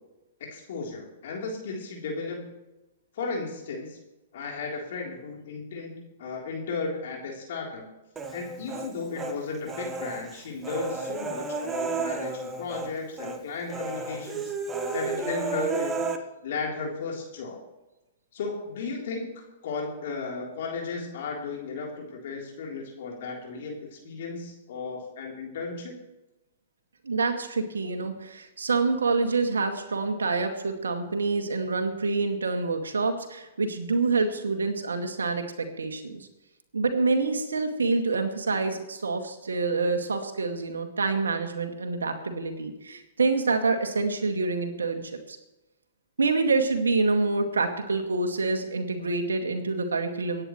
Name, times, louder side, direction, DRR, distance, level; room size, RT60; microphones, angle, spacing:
voice 1, 0.4-2.5 3.1-4.0 4.3-7.9 8.3-14.5 14.9-16.1 16.4-17.6 18.3-26.0, left 4 dB, 60° left, -1 dB, 3.7 m, -35 dB
Human voice, 8.2-9.4 9.7-12.9 13.2-13.4 13.7-16.2, right 4 dB, 15° right, 1.6 m, -32 dB
voice 2, 27.0-36.3 36.7-45.0 45.3-45.4 46.2-50.5, right 3 dB, 85° right, 5 dB, 2.1 m, -27 dB
24.5 x 9.8 x 3.2 m, 1.0 s
hypercardioid pair, 115°, 0 cm